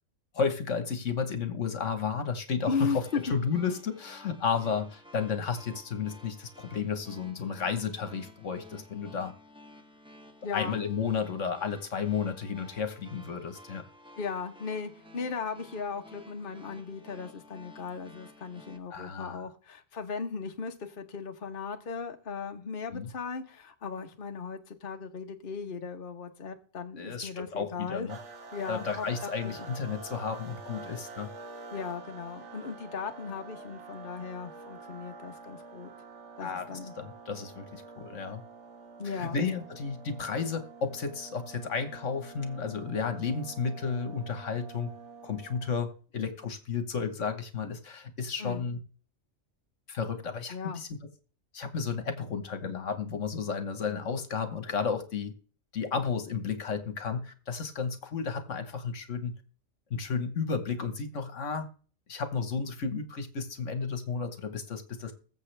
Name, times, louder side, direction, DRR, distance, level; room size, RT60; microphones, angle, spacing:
voice 1, 0.3-3.0 3.3-9.3 10.5-13.8 18.9-19.4 22.9-23.1 27.0-28.2 28.7-31.3 36.4-38.4 39.0-44.9 45.2-48.8 49.9-51.0 51.5-55.3 55.7-59.3 59.9-61.7 62.1-65.1, left 5 dB, 70° left, 1.6 m, -32 dB
voice 2, 2.7-3.4 10.4-10.8 14.2-28.1 28.5-29.5 31.7-35.9 36.4-36.9 39.0-39.4 48.4-48.7 50.5-50.8, left 5 dB, 45° left, 1.3 m, -37 dB
sound 1, 2.8-18.8, left 1 dB, 5° right, 1.2 m, -53 dB
sound 2, 28.1-45.9, right 4 dB, 65° right, 1.6 m, -47 dB
21.0 x 7.3 x 3.3 m
omnidirectional pair, 1.3 m